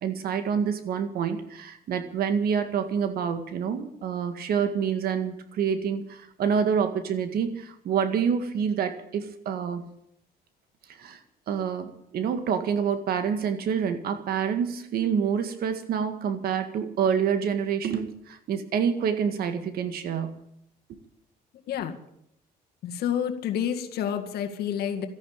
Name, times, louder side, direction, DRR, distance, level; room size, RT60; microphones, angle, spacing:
voice 1, 0.0-9.8 11.0-11.2 11.5-20.3, right 7 dB, 65° right, 9 dB, 1.9 m, -27 dB
voice 2, 22.8-25.1, left 9 dB, 70° left, 5 dB, 2.0 m, -29 dB
13.5 x 10.5 x 8.8 m, 0.76 s
cardioid pair, 110°, 17 cm